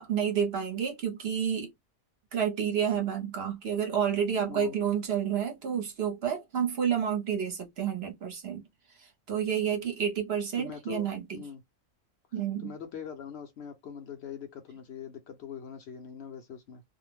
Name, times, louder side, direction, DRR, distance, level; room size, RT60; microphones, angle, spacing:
voice 1, 0.0-1.7 2.3-8.6 9.0-11.4 12.3-12.7, right 8 dB, 60° right, 0.8 m, -30 dB
voice 2, 4.5-4.8 10.6-11.6 12.6-16.8, left 7 dB, 65° left, 0.7 m, -42 dB
2.3 x 2.0 x 3.1 m
omnidirectional pair, 1.4 m